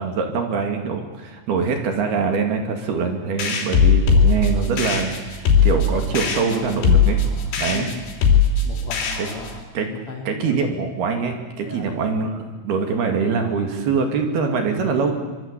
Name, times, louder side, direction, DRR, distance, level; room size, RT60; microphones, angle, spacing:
voice 1, 0.0-7.2 7.6-7.9 9.2-9.3 9.7-9.9 10.3-15.1, right 5 dB, 60° right, 5 dB, 4.0 m, -23 dB
sound 1, 3.4-9.6, left 5 dB, 70° left, 5.8 m, -19 dB
voice 2, 7.7-8.1 8.6-9.6 9.9-10.6 11.6-11.8, left 3 dB, 40° left, 2 dB, 3.1 m, -36 dB
25.0 x 23.5 x 8.3 m, 1.3 s
omnidirectional pair, 5.6 m